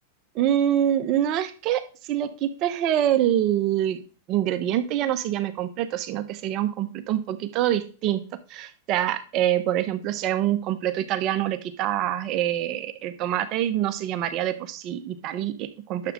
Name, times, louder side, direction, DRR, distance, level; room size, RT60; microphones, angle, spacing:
voice 1, 0.3-4.0 4.3-8.2 8.5-16.1, right 11 dB, 45° right, 11 dB, 1.0 m, -25 dB
11.5 x 7.1 x 3.7 m, 0.38 s
hypercardioid pair, 115°, 0 cm